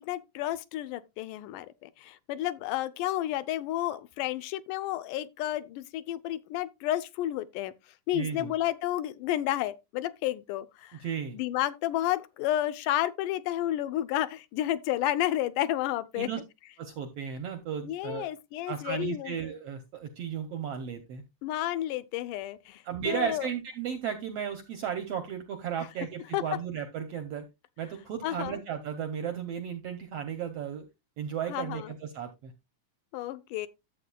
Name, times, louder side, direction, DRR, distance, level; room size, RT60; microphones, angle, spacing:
voice 1, 0.0-7.7 8.1-11.0 11.3-16.3 17.8-19.3 21.4-23.5 25.8-25.9 26.3-26.4 28.2-28.6 31.5-31.9 33.1-33.7, left 13 dB, 80° left, 2.1 m, -31 dB
voice 2, 8.1-8.5 11.0-11.4 16.1-16.4 16.8-18.3 18.7-21.2 22.8-27.4 27.8-30.8 31.2-32.5, right 8 dB, 75° right, 1.4 m, -35 dB
12.5 x 7.7 x 2.3 m
omnidirectional pair, 3.7 m